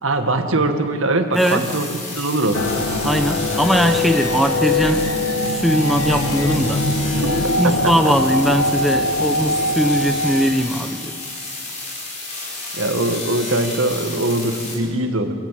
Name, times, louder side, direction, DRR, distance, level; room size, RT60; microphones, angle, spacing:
voice 1, 0.0-2.6 7.1-8.1 12.7-15.3, right 2 dB, 75° right, 6 dB, 1.8 m, -22 dB
sound 1, 1.3-14.7, left 2 dB, 35° left, 4.7 m, -31 dB
voice 2, 1.3-1.7 3.0-5.2 5.5-6.9 7.6-11.2, equal, ahead, 5 dB, 0.8 m, -20 dB
sound 2, 2.5-10.5, left 1 dB, 80° left, 1.4 m, -22 dB
25.5 x 17.5 x 7.6 m, 2.2 s
head